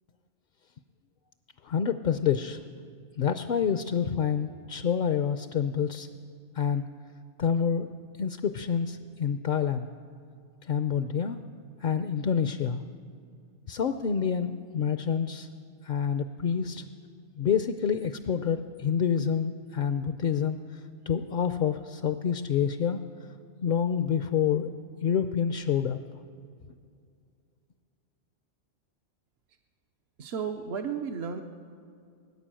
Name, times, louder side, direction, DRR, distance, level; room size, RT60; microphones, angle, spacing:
voice 1, 1.6-2.6 3.2-6.1 6.5-6.8 7.4-7.9 8.2-9.9 10.6-11.4 11.8-12.8 13.7-15.5 15.8-16.8 17.4-20.8 21.1-23.0 23.6-24.7 25.0-26.0, left 7 dB, 60° left, 10 dB, 0.6 m, -27 dB
voice 2, 30.2-31.4, right 6 dB, 70° right, 5 dB, 0.9 m, -33 dB
19.5 x 9.6 x 7.6 m, 2.3 s
omnidirectional pair, 1.2 m